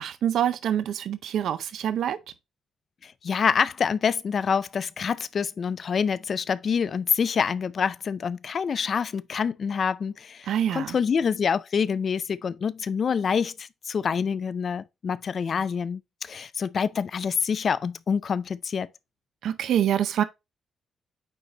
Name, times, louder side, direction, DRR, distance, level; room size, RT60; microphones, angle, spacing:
voice 1, 0.0-2.2 10.5-11.0 19.4-20.2, right 10 dB, 70° right, 0.5 m, -25 dB
voice 2, 3.0-18.9, left 6 dB, 40° left, 0.4 m, -26 dB
9.0 x 4.0 x 2.8 m
cardioid pair, 160°, 0 cm